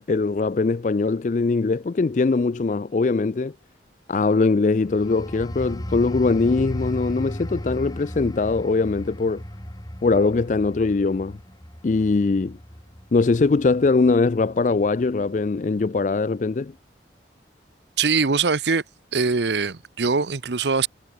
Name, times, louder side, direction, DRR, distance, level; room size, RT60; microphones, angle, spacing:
voice 1, 0.0-3.5 4.1-9.4 10.0-11.4 11.8-12.6 13.1-16.7, left 3 dB, 45° left, 0.4 m, -21 dB
sound 1, 4.8-15.1 15.6-15.8, equal, 20° left, 3.7 m, -36 dB
voice 2, 18.0-18.8 19.1-20.9, right 4 dB, 75° right, 0.9 m, -22 dB
head